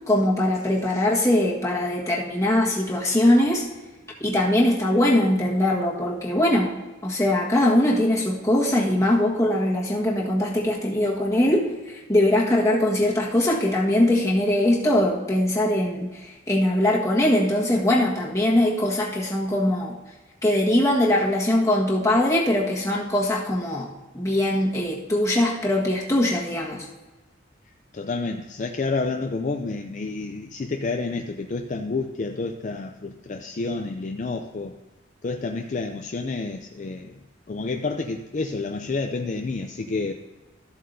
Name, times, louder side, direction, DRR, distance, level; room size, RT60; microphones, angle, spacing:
voice 1, 0.1-3.6 4.2-6.7 7.0-20.0 20.4-23.9 24.1-26.9, left 1 dB, 15° left, -3 dB, 1.5 m, -21 dB
voice 2, 8.7-9.0 27.9-34.8 35.2-37.2 37.5-40.1, left 3 dB, 40° left, 4 dB, 0.4 m, -29 dB
13.5 x 7.6 x 2.7 m, 1.2 s
head